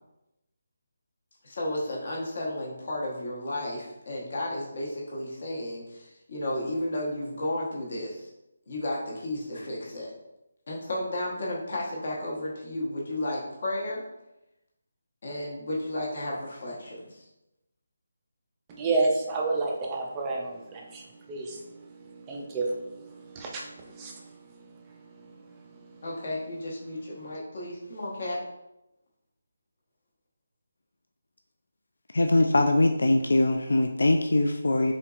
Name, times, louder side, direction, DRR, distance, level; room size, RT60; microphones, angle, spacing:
voice 1, 1.4-8.3 8.7-10.1 10.7-14.0 15.2-17.2 26.0-28.4, left 1 dB, 45° left, -4 dB, 1.0 m, -33 dB
voice 2, 18.7-21.0 21.3-21.6 22.0-24.3, right 3 dB, 10° right, -1 dB, 0.3 m, -30 dB
voice 3, 32.1-34.9, left 2 dB, 80° left, 5 dB, 0.3 m, -22 dB
4.3 x 3.8 x 2.4 m, 0.91 s
hypercardioid pair, 175°, 0 cm